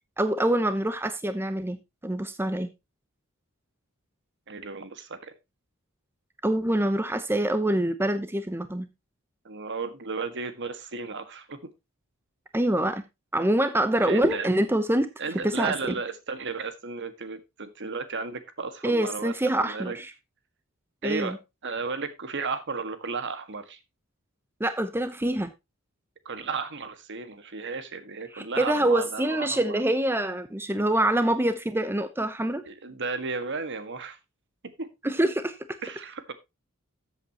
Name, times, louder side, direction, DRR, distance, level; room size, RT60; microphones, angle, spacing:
voice 1, 0.2-2.7 6.4-8.9 12.5-13.0 13.3-15.1 15.4-15.7 18.8-20.1 21.0-21.4 24.6-25.5 28.3-32.6 35.0-35.6, right 1 dB, 10° right, 0.8 m, -25 dB
voice 2, 4.5-5.3 9.4-11.6 14.0-14.5 15.2-20.0 21.0-21.4 21.6-23.8 26.2-29.8 32.6-34.2 34.6-34.9 35.8-36.3, right 4 dB, 55° right, 1.7 m, -34 dB
14.0 x 8.1 x 2.9 m
head